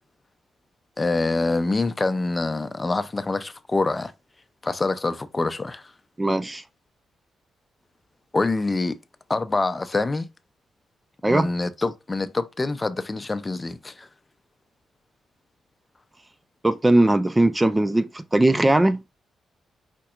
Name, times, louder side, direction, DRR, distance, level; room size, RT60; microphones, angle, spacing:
voice 1, 1.0-4.1 4.6-5.8 8.3-9.0 9.3-10.3 11.3-14.1, left 3 dB, 30° left, 0.6 m, -25 dB
voice 2, 6.2-6.6 11.2-11.5 16.6-19.0, right 1 dB, 20° right, 0.5 m, -19 dB
5.1 x 4.2 x 2.5 m
supercardioid pair, 45°, 0 cm